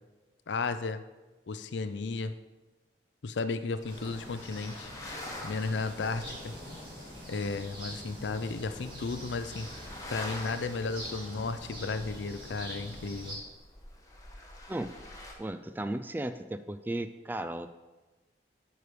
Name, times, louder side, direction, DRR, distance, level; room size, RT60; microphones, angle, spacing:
voice 1, 0.5-1.0 1.5-2.3 3.2-5.2 5.4-6.5 7.3-9.7 10.1-13.4, left 4 dB, 90° left, 11 dB, 0.5 m, -34 dB
sound 1, 3.7-15.3, left 1 dB, 20° left, 1.2 m, -47 dB
sound 2, 3.9-13.3, equal, 30° right, 3.0 m, -45 dB
voice 2, 15.4-17.7, right 1 dB, 10° right, 11 dB, 0.3 m, -35 dB
9.5 x 4.8 x 5.0 m, 1.2 s
head